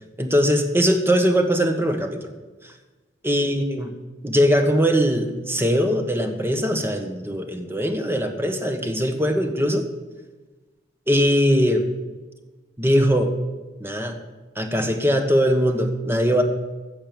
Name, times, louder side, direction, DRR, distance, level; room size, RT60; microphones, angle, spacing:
voice 1, 0.2-2.2 3.2-3.9 4.2-9.8 11.1-11.8 12.8-13.3 13.8-14.1 14.6-16.4, equal, 15° right, 6 dB, 1.3 m, -21 dB
15.5 x 6.7 x 7.0 m, 1.2 s
head